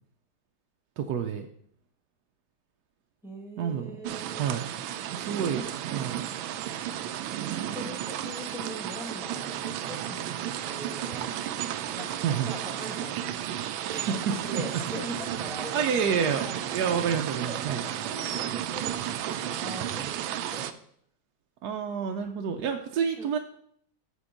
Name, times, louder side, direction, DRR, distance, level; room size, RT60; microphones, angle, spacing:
voice 1, 1.0-1.5 3.6-3.9 4.4-4.7 5.1-6.2 12.2-12.5 13.9-14.3 14.9-15.0 15.7-17.8 21.6-23.4, right 7 dB, 70° right, 4 dB, 1.0 m, -29 dB
voice 2, 3.2-4.5 5.5-5.7 7.7-11.3 11.9-13.2 13.9-14.1 14.5-17.0 17.3-20.2 20.5-20.7 23.2-23.3, equal, ahead, 1 dB, 1.3 m, -42 dB
sound 1, 4.0-20.7, right 11 dB, 85° right, 1.3 m, -33 dB
8.2 x 5.2 x 5.1 m, 0.66 s
omnidirectional pair, 2.1 m